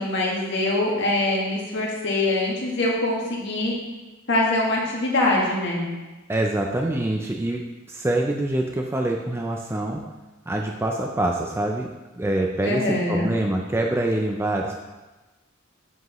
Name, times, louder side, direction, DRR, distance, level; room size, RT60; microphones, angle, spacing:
voice 1, 0.0-3.7 4.3-5.9 12.6-13.3, left 2 dB, 60° left, -2 dB, 1.8 m, -23 dB
voice 2, 6.3-7.6 7.9-10.0 10.5-11.9 12.1-14.7, right 1 dB, 10° right, 1 dB, 0.4 m, -25 dB
7.8 x 7.8 x 3.0 m, 1.2 s
head